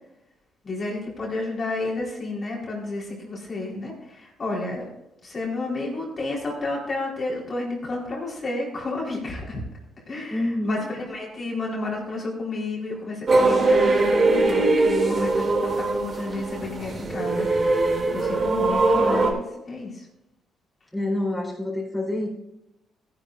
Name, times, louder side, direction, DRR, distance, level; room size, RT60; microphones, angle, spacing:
voice 1, 0.6-4.9 5.2-9.6 10.1-17.5 18.1-20.0, left 2 dB, 40° left, -3 dB, 4.1 m, -31 dB
voice 2, 10.3-10.8 20.9-22.3, left 1 dB, 10° left, -3 dB, 4.3 m, -27 dB
sound 1, 13.3-19.3, right 2 dB, 40° right, 2.7 m, -21 dB
14.5 x 11.0 x 2.6 m, 0.89 s
cardioid pair, 90°, 0 cm